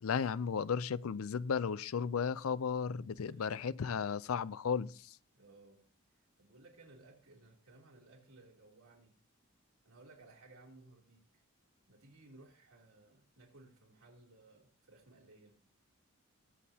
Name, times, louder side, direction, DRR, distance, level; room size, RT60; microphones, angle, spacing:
voice 1, 0.0-5.2, left 6 dB, 75° left, 0.4 m, -35 dB
voice 2, 3.2-3.6 5.3-9.2 9.8-11.4 11.9-15.6, right 2 dB, 80° right, 3.1 m, -60 dB
21.5 x 7.5 x 2.8 m
head